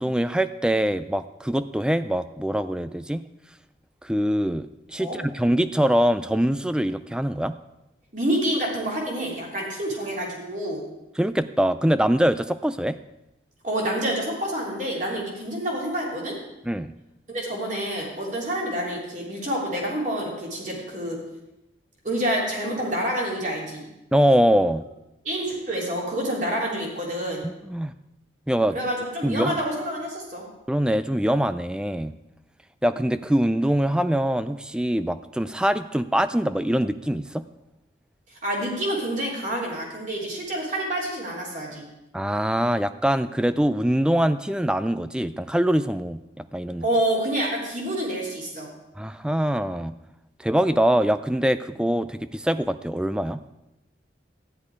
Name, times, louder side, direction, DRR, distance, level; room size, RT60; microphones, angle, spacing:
voice 1, 0.0-3.2 4.0-7.5 11.2-13.0 16.7-16.9 24.1-24.8 27.4-27.9 28.5-28.8 29.2-29.6 30.7-32.1 32.8-37.4 42.1-46.8 49.0-49.9 50.4-53.4, equal, 5° right, 12 dB, 0.3 m, -23 dB
voice 2, 8.1-10.8 13.6-16.3 17.3-21.2 22.0-23.9 25.2-27.4 28.7-30.5 38.3-41.8 46.8-48.7, right 1 dB, 40° right, -2 dB, 3.4 m, -28 dB
13.5 x 10.5 x 4.9 m, 0.92 s
head